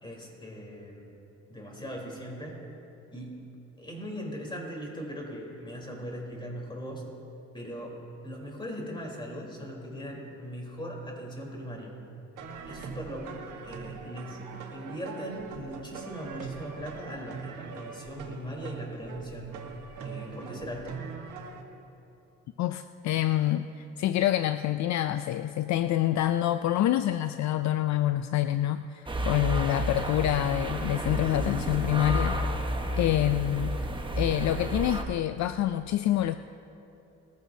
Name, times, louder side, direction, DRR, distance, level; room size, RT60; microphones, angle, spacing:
voice 1, 0.0-1.1 1.5-2.6 3.1-3.5 3.8-7.1 7.5-12.0 12.6-19.5 20.0-21.0, equal, 15° left, -1 dB, 3.7 m, -39 dB
sound 1, 12.4-21.6, right 6 dB, 85° right, 1.4 m, -42 dB
voice 2, 22.6-32.4 33.0-33.8 34.2-36.4, left 13 dB, 65° left, 11 dB, 0.4 m, -27 dB
sound 2, 29.1-35.0, right 1 dB, 15° right, 1.1 m, -31 dB
20.5 x 14.5 x 2.7 m, 2.9 s
cardioid pair, 90°, 30 cm